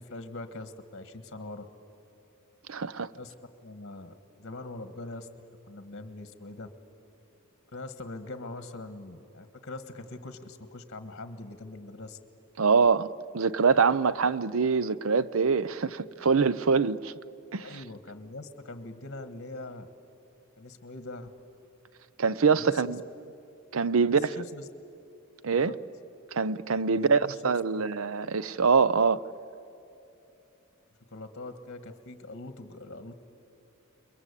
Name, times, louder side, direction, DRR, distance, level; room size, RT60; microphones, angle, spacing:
voice 1, 0.0-1.7 3.1-3.3 3.6-5.3 5.7-6.7 7.7-12.2 17.6-19.9 20.6-21.3 22.5-22.9 24.0-24.6 25.4-25.8 26.9-27.3 27.7-27.8 31.1-33.1, left 2 dB, 55° left, 1.5 m, -42 dB
voice 2, 2.7-3.1 12.6-17.1 17.5-17.7 22.2-23.0 23.7-24.3 25.4-25.7 26.3-29.2, right 5 dB, 70° right, 0.6 m, -24 dB
28.5 x 22.0 x 8.4 m
head